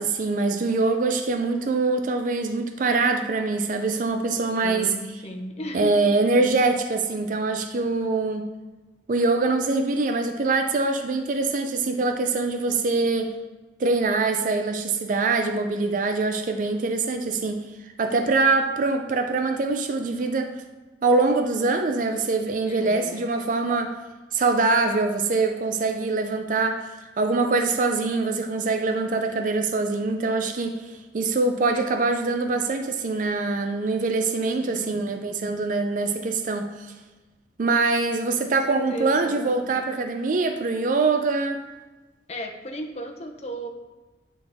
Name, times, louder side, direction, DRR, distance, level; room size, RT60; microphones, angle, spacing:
voice 1, 0.0-4.9 5.7-8.5 9.1-13.3 13.8-17.6 18.0-20.5 21.0-23.9 24.3-36.7 37.6-41.6, right 3 dB, 45° right, 6 dB, 0.4 m, -24 dB
voice 2, 4.6-6.1 22.7-23.3 34.6-35.3 38.7-39.3 42.3-43.7, equal, 35° left, 3 dB, 0.7 m, -35 dB
9.0 x 4.0 x 3.5 m, 1.2 s
head